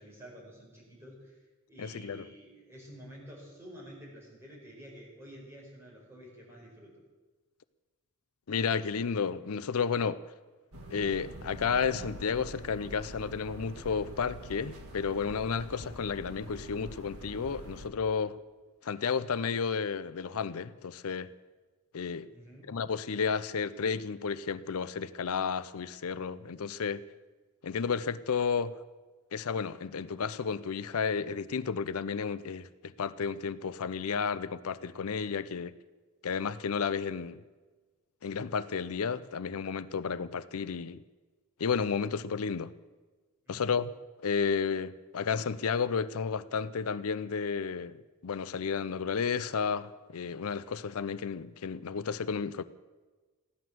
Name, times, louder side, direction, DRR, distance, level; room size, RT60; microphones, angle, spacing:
voice 1, 0.0-6.9 22.3-22.7 43.5-43.8, equal, 10° right, 5.4 m, -50 dB
voice 2, 1.8-2.2 8.5-10.2 10.9-18.4 18.8-21.3 21.9-22.3 22.7-27.0 27.6-28.7 29.3-35.7 36.2-37.4 38.2-41.0 41.6-42.7 43.5-43.9 44.2-52.6, left 6 dB, 80° left, 0.5 m, -32 dB
sound 1, 10.7-17.9, equal, 85° right, 1.9 m, -45 dB
15.5 x 11.5 x 7.7 m
head